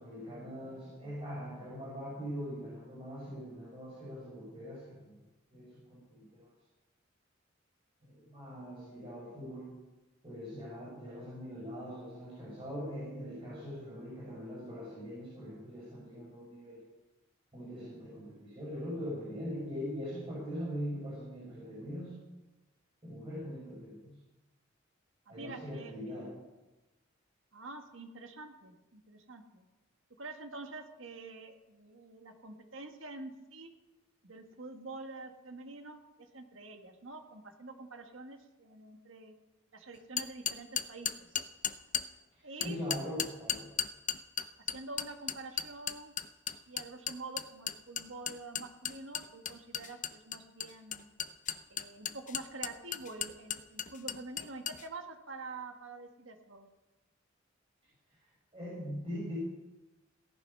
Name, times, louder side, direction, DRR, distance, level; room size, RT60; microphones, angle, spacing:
voice 1, 0.0-5.1 5.5-6.5 8.0-9.7 10.2-16.8 17.5-22.1 23.0-24.2 25.3-26.3 42.3-43.7 58.5-59.4, equal, 30° right, -8 dB, 5.8 m, -42 dB
voice 2, 25.3-26.2 27.5-29.7 30.2-33.7 34.2-36.0 36.3-39.3 39.7-41.3 42.4-42.8 44.7-46.1 46.7-51.1 51.7-56.7, right 3 dB, 80° right, 5 dB, 1.7 m, -47 dB
sound 1, 40.2-42.1 42.6-54.8, left 9 dB, 40° left, 0.7 m, -35 dB
16.5 x 11.0 x 5.6 m, 1.1 s
head